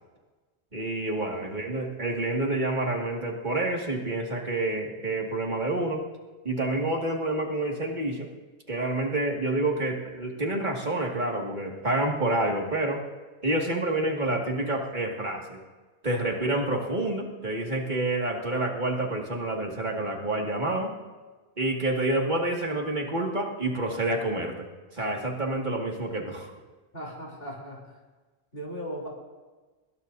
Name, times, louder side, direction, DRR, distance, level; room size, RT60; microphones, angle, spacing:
voice 1, 0.7-6.0 6.4-8.3 8.7-13.0 13.4-15.6 16.0-20.9 21.6-24.7 24.9-26.5, right 2 dB, 45° right, -1 dB, 2.3 m, -28 dB
voice 2, 26.9-27.8 28.5-29.1, equal, 60° left, -3 dB, 3.7 m, -37 dB
25.0 x 21.0 x 2.7 m, 1.3 s
omnidirectional pair, 1.1 m